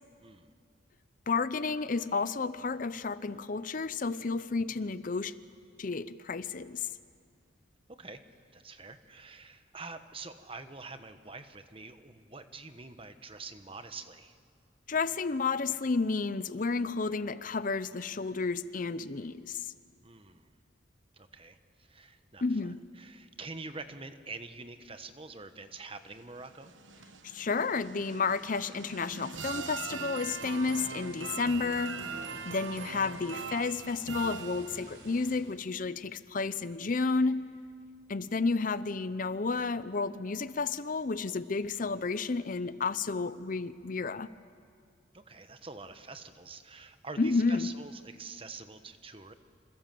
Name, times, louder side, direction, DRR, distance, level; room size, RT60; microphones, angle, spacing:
voice 1, 1.3-5.3 5.8-6.9 14.9-19.7 22.4-22.8 27.2-32.1 32.5-37.5 38.1-44.3 47.2-47.7, left 4 dB, 45° left, 15 dB, 0.6 m, -31 dB
voice 2, 7.9-8.2 8.5-14.4 20.0-20.5 21.1-26.7 32.3-32.5 45.1-49.3, right 3 dB, 30° right, 9 dB, 1.2 m, -46 dB
sound 1, 26.2-35.1, right 5 dB, 85° right, 1.3 m, -41 dB
sound 2, 30.2-35.4, right 2 dB, 65° right, 6.3 m, -53 dB
27.5 x 26.5 x 7.7 m, 2.2 s
head